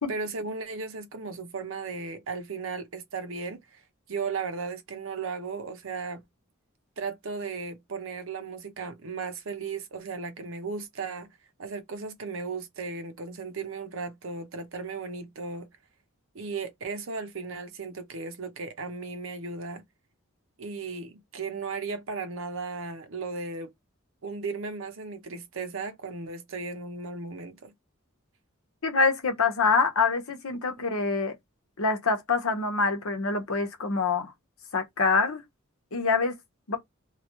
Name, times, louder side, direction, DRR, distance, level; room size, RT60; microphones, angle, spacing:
voice 1, 0.1-3.8 4.1-6.2 7.0-11.3 11.6-15.7 16.3-19.8 20.6-23.7 24.2-27.7, right 4 dB, 65° right, 0.7 m, -36 dB
voice 2, 28.8-31.4 31.8-34.3 34.7-35.4 35.9-36.4 36.7-36.8, left 4 dB, 80° left, 1.0 m, -25 dB
3.0 x 2.4 x 3.0 m
head